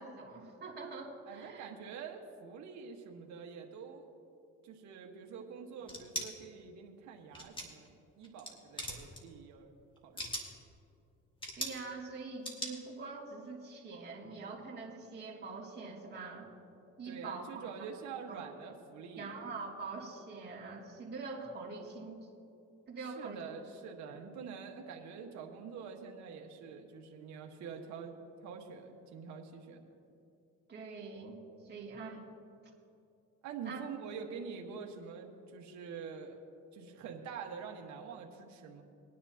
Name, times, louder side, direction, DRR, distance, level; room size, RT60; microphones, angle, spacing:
voice 1, 0.0-1.7 11.6-16.5 17.0-17.6 18.3-18.4 19.2-22.3 22.9-23.5 24.1-24.2 30.7-32.2 33.6-33.8, right 4 dB, 35° right, -4 dB, 2.7 m, -44 dB
voice 2, 1.3-4.1 4.6-9.7 10.0-10.3 17.1-19.5 23.1-28.1 28.4-29.9 33.4-36.4 36.7-38.8, right 6 dB, 70° right, 1 dB, 1.5 m, -46 dB
sound 1, 5.9-6.3 7.3-7.9 8.2-8.5 8.8-9.2 10.0-10.5 11.4-11.8 12.5-12.7, equal, 15° left, 2.3 m, -39 dB
21.5 x 10.0 x 2.9 m, 2.6 s
cardioid pair, 90°, 30 cm